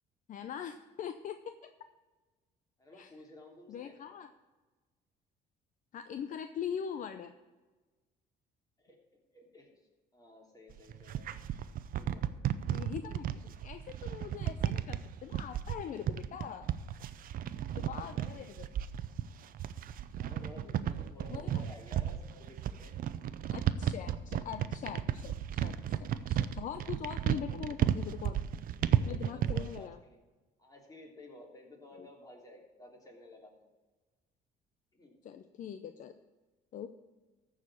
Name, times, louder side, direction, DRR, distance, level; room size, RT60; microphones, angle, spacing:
voice 1, 0.3-1.7 2.9-3.1 3.7-4.3 5.9-7.3 12.7-16.7 17.7-18.7 21.3-21.7 23.5-28.4 29.1-30.0 31.9-32.1 35.2-36.1 36.7-36.9, left 8 dB, 50° left, 9 dB, 0.6 m, -42 dB
voice 2, 2.8-4.0 8.8-9.7 10.1-11.3 11.9-12.3 17.7-18.3 20.1-22.9 27.2-27.5 28.7-30.2 30.6-33.7 34.9-35.2, left 1 dB, 20° left, 0 dB, 3.0 m, -54 dB
sound 1, 10.7-29.8, right 10 dB, 55° right, 0.6 m, -33 dB
14.0 x 4.9 x 7.2 m, 1.2 s
cardioid pair, 110°, 17 cm